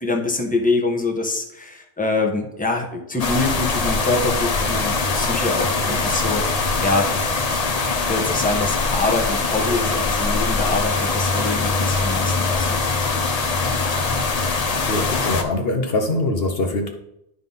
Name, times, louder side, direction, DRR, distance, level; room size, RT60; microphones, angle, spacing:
voice 1, 0.0-7.1 8.1-12.8, left 3 dB, 5° left, 1 dB, 1.2 m, -25 dB
sound 1, 3.2-15.4, left 3 dB, 35° left, 0.8 m, -22 dB
voice 2, 14.7-16.9, left 2 dB, 60° left, 4 dB, 1.1 m, -23 dB
11.0 x 3.7 x 5.5 m, 0.82 s
omnidirectional pair, 1.2 m